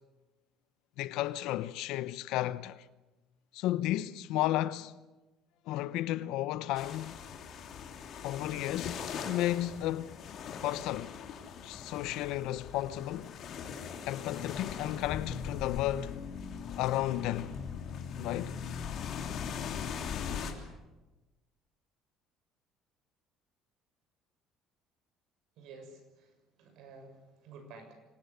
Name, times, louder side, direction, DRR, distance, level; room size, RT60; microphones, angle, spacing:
voice 1, 1.0-2.8 3.5-5.0 5.7-7.2 8.2-10.2 10.6-11.1 11.6-13.3 14.1-16.2 16.8-17.5 18.1-18.6, left 14 dB, 70° left, 0.9 m, -33 dB
sound 1, 6.7-20.5, left 7 dB, 40° left, 3.1 m, -40 dB
voice 2, 25.6-27.9, right 3 dB, 60° right, 6.8 m, -52 dB
25.5 x 18.0 x 8.3 m
cardioid pair, 175°, 0 cm